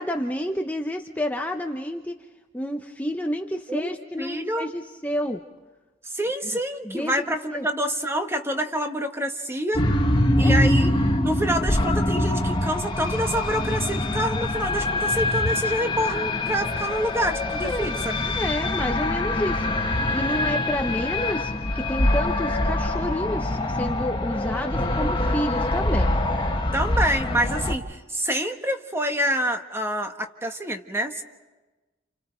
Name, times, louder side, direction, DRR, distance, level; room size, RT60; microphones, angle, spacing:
voice 1, 0.0-2.2 2.5-5.4 6.8-7.2 7.5-7.7 10.4-10.5 17.6-17.9 18.3-19.7 20.0-26.1, equal, 10° left, 3 dB, 0.9 m, -29 dB
voice 2, 3.7-4.7 6.1-9.8 10.3-18.3 26.7-31.2, equal, 15° right, 5 dB, 1.4 m, -27 dB
sound 1, 9.8-27.8, left 1 dB, 25° left, 1.6 m, -24 dB
30.0 x 28.5 x 4.5 m, 1.2 s
head